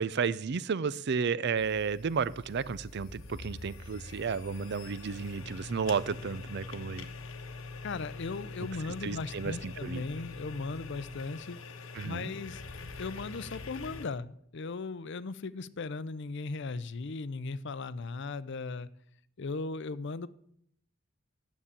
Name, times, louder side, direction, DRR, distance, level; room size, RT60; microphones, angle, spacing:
voice 1, 0.0-7.1 9.0-10.0 11.9-12.3, right 5 dB, 55° right, 0.5 m, -32 dB
sound 1, 1.6-14.1, left 3 dB, 80° left, 1.1 m, -44 dB
voice 2, 7.8-11.6 12.0-12.6 13.0-18.9 19.4-20.3, left 3 dB, 60° left, 0.5 m, -37 dB
10.0 x 7.3 x 8.2 m
head